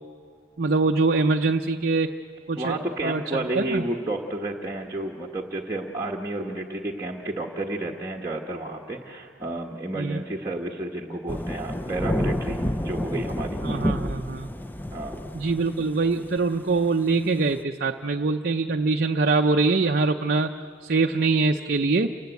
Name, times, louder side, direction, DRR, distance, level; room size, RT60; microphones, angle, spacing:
voice 1, 0.6-2.1 2.5-2.8 3.0-3.2 3.6-3.8 10.0-10.2 13.6-14.5 15.3-20.5 20.8-22.1, right 3 dB, 50° right, 4 dB, 0.6 m, -23 dB
voice 2, 2.6-13.9 14.9-15.2, right 1 dB, 15° right, -3 dB, 1.3 m, -31 dB
Thunder / Rain, 11.3-17.6, equal, 10° left, 0.6 m, -29 dB
29.0 x 18.5 x 8.2 m, 2.4 s
head